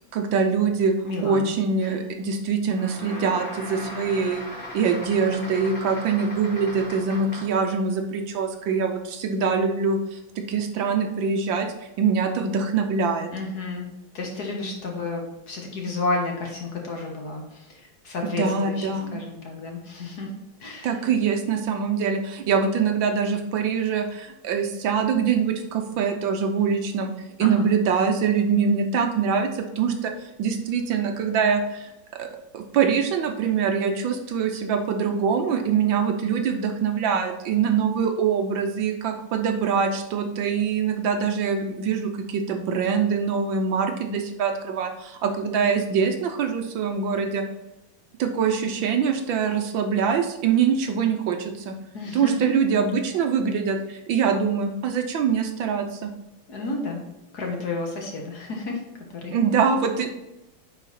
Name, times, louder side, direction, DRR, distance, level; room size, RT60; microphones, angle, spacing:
voice 1, 0.1-0.9 1.2-4.4 4.7-11.7 12.0-13.3 18.3-19.2 20.8-27.1 27.4-31.9 32.2-32.3 32.5-47.4 48.2-51.7 52.1-56.1 59.3-60.1, right 6 dB, 70° right, 5 dB, 1.4 m, -24 dB
voice 2, 1.0-1.5 1.8-2.0 13.3-13.9 14.1-20.3 20.6-20.9 27.4-27.7 51.9-52.6 56.5-57.0 57.3-58.8 59.1-59.4, left 3 dB, 50° left, 1 dB, 1.7 m, -31 dB
sound 1, 2.7-7.7, equal, 25° left, 1.9 m, -38 dB
9.6 x 4.1 x 4.2 m, 0.94 s
omnidirectional pair, 2.3 m